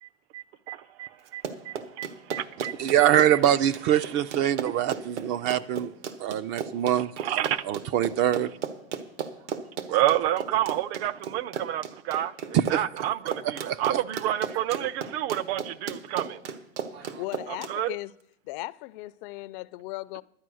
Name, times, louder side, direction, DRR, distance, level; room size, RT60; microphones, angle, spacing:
voice 1, 0.0-3.0 3.3-3.4 7.2-7.6 9.9-16.4 17.5-17.9, right 12 dB, 60° right, 0.7 m, -29 dB
Run, 1.3-17.7, right 7 dB, 80° right, 1.4 m, -34 dB
voice 2, 2.8-5.9 6.2-8.5 12.5-12.8 13.4-14.0 16.9-17.2, right 11 dB, 35° right, 0.4 m, -24 dB
voice 3, 17.0-18.1 18.5-20.2, left 20 dB, 50° left, 0.4 m, -37 dB
11.5 x 9.0 x 6.2 m
hypercardioid pair, 115°, 35 cm